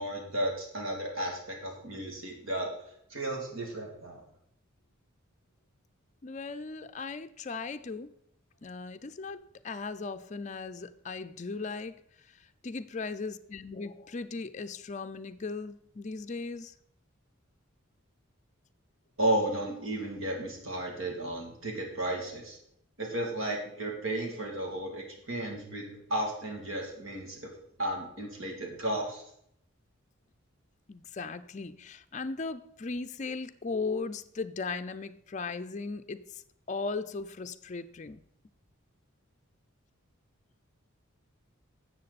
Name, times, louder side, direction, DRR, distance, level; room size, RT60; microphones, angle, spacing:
voice 1, 0.0-2.7 3.1-4.2 19.2-22.6 23.0-27.5 27.8-29.2, right 1 dB, 70° right, 1 dB, 2.6 m, -33 dB
voice 2, 6.2-8.1 8.6-12.0 12.3-16.7 30.9-36.4 36.7-38.2, left 4 dB, 35° left, 10 dB, 0.4 m, -37 dB
12.0 x 7.6 x 4.1 m, 0.71 s
head